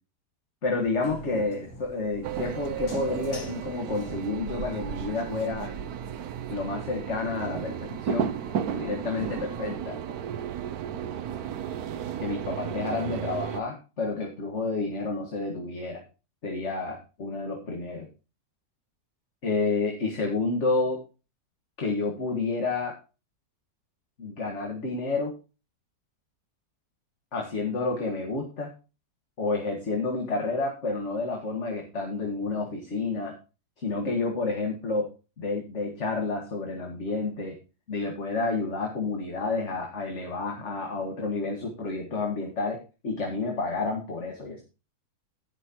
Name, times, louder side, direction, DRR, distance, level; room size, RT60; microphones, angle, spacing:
sound 1, 0.6-4.7, left 1 dB, 80° left, 2.8 m, -44 dB
voice 1, 0.6-5.7 6.5-8.3 8.7-10.0 12.2-16.0 16.4-18.1 19.4-21.0 21.8-22.9 24.2-25.3 27.3-28.7 29.4-33.3 33.8-35.1 35.4-37.6 37.9-44.6, left 3 dB, 50° left, 1 dB, 2.0 m, -30 dB
sound 2, 2.2-13.6, right 8 dB, 75° right, 1.2 m, -34 dB
18.5 x 6.1 x 2.9 m, 0.31 s
omnidirectional pair, 1.6 m